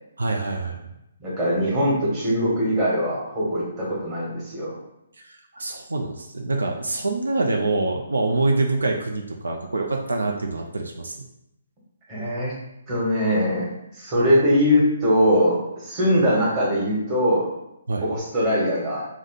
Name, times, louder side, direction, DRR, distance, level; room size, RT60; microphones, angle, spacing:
voice 1, 0.2-0.9 5.2-11.2 17.9-18.1, right 2 dB, 85° right, 2 dB, 0.4 m, -25 dB
voice 2, 1.2-4.8 12.1-12.5 12.9-13.7 14.0-17.5 18.0-19.1, equal, 25° right, -5 dB, 1.3 m, -21 dB
3.6 x 2.0 x 3.9 m, 0.85 s
figure-of-eight pair, 140°, 0 cm